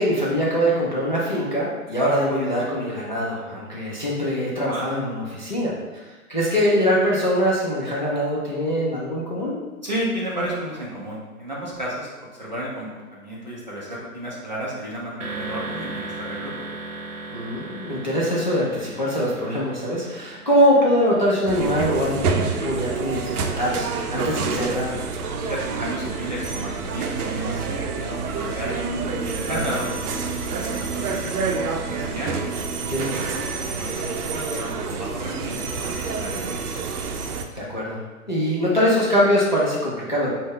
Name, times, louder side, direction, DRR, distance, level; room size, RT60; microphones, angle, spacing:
voice 1, 0.0-6.0 6.3-9.6 17.3-25.0 29.5-29.6 32.9-33.1 37.5-38.0 38.3-40.3, equal, 35° left, -7 dB, 0.4 m, -23 dB
voice 2, 9.8-16.7 25.4-29.0 29.2-32.3 32.9-36.4, right 1 dB, 35° right, -6 dB, 0.4 m, -33 dB
sound 1, 15.2-23.0, right 3 dB, 55° right, 0.9 m, -37 dB
sound 2, 21.5-37.5, right 4 dB, 80° right, 0.6 m, -28 dB
3.5 x 2.1 x 3.4 m, 1.2 s
hypercardioid pair, 165°, 44 cm